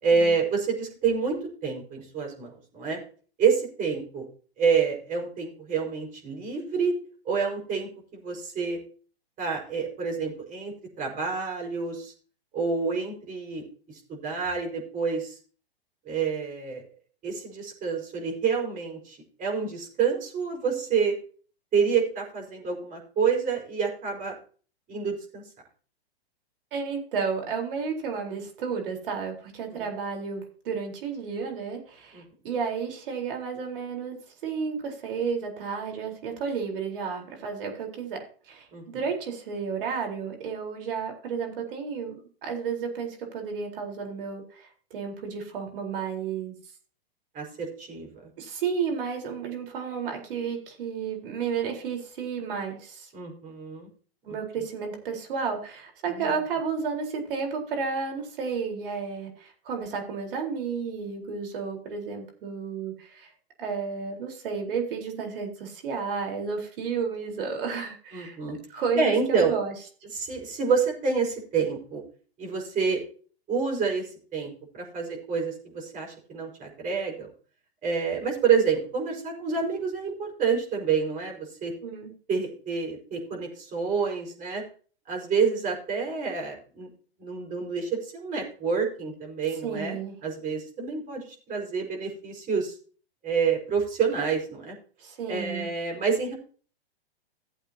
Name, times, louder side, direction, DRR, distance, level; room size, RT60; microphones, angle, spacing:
voice 1, 0.0-3.0 3.4-4.2 4.6-6.9 7.2-8.8 9.4-12.1 12.5-15.4 16.0-16.8 17.2-21.1 21.7-24.3 24.9-25.4 29.7-29.8 32.1-32.2 38.7-38.8 47.3-48.1 53.1-53.9 56.1-56.3 68.1-68.6 68.9-69.5 70.1-72.0 72.4-73.0 73.5-74.0 74.3-74.5 74.8-77.3 77.8-81.7 82.3-84.6 85.1-86.9 87.2-90.0 90.2-92.7 93.2-94.8 95.3-96.3, right 5 dB, 25° right, 0 dB, 5.0 m, -28 dB
voice 2, 26.7-34.2 34.4-38.2 38.5-46.5 48.4-53.1 54.2-63.3 63.6-68.4 68.7-69.7 81.8-82.1 89.6-90.2 95.0-95.7, right 5 dB, 60° right, 3 dB, 4.1 m, -32 dB
16.5 x 8.0 x 2.8 m, 0.41 s
hypercardioid pair, 120°, 31 cm